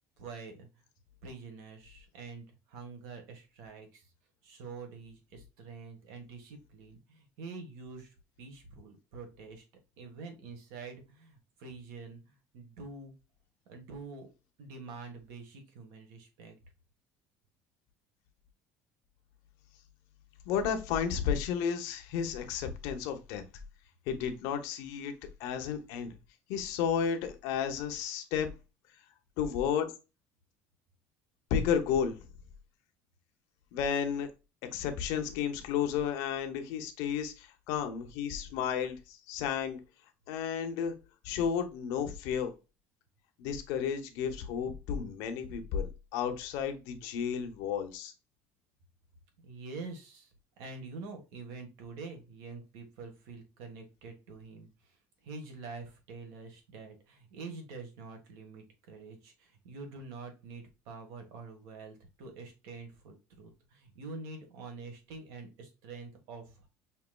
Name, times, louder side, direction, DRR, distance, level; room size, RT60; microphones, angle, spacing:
voice 1, 0.2-0.8 1.2-4.1 4.4-9.6 10.0-13.1 13.7-14.3 14.6-16.5 49.4-66.7, right 4 dB, 70° right, 1.4 m, -46 dB
voice 2, 20.5-23.4 24.1-25.1 25.4-26.1 26.5-28.5 29.4-29.9 31.5-32.2 33.7-34.3 34.7-39.8 40.3-40.9 41.2-42.5 43.4-48.1, left 7 dB, 70° left, 0.8 m, -32 dB
5.7 x 3.0 x 2.2 m
cardioid pair, 175°, 6 cm